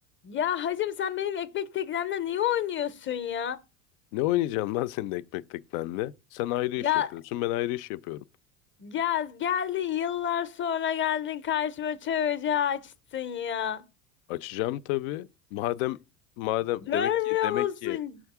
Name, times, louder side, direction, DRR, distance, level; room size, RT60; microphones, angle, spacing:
voice 1, 0.2-3.6 6.8-7.1 8.8-13.8 16.8-18.2, left 10 dB, 25° left, 0.7 m, -29 dB
voice 2, 4.1-8.2 14.3-16.0 16.4-18.0, left 16 dB, 70° left, 0.5 m, -30 dB
6.3 x 3.6 x 4.7 m
hypercardioid pair, 85°, 43 cm